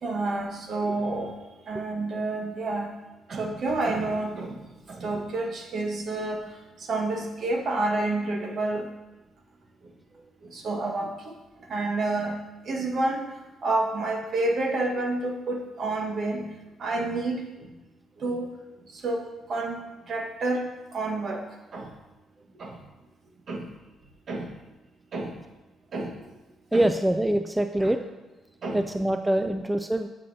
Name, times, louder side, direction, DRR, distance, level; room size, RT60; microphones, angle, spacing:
voice 1, 0.0-1.3 1.7-2.9 3.3-4.6 4.9-6.5 6.9-8.9 10.5-11.1 11.7-12.4 12.7-13.2 13.6-16.4 16.8-17.4 18.2-18.5 19.0-20.7 20.9-21.4 21.7-21.9 22.6-22.8 23.5-23.7 24.3-24.5 25.1-25.3 25.9-26.1 26.7-26.9 28.6-28.8, right 2 dB, 55° right, 2 dB, 1.5 m, -29 dB
voice 2, 26.7-28.0 28.7-30.1, right 1 dB, 10° right, 7 dB, 0.4 m, -24 dB
12.0 x 6.9 x 2.8 m, 1.1 s
cardioid pair, 90°, 0 cm